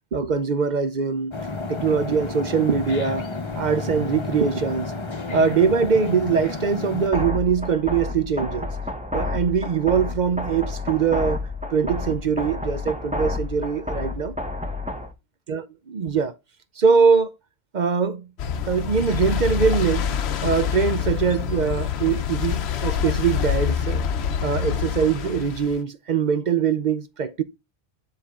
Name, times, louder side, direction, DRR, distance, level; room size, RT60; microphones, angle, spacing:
voice 1, 0.1-1.3 1.7-3.3 3.6-4.9 5.3-8.7 9.1-11.4 11.7-14.4 15.5-16.3 16.8-17.3 17.7-18.3 18.7-20.1 20.4-24.0 24.4-27.4, right 6 dB, 50° right, 0.6 m, -22 dB
sound 1, 1.3-7.1, left 3 dB, 30° left, 0.8 m, -31 dB
sound 2, 7.1-15.1, left 2 dB, 5° right, 0.8 m, -30 dB
sound 3, 18.4-25.8, left 8 dB, 70° left, 1.0 m, -26 dB
9.4 x 4.1 x 3.6 m
omnidirectional pair, 1.1 m